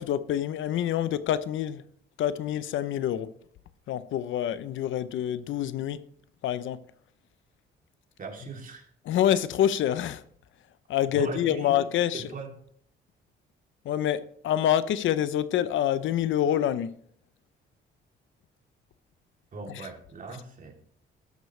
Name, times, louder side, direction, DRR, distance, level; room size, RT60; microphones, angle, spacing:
voice 1, 0.0-1.8 2.2-3.3 3.9-6.0 6.4-6.8 9.1-10.2 10.9-12.2 13.8-16.9 19.7-19.9, left 10 dB, 80° left, 0.8 m, -26 dB
voice 2, 8.2-8.9 11.1-11.7 12.1-12.5 19.5-20.9, right 4 dB, 45° right, 3.1 m, -39 dB
13.0 x 12.0 x 3.3 m
cardioid pair, 90°, 20 cm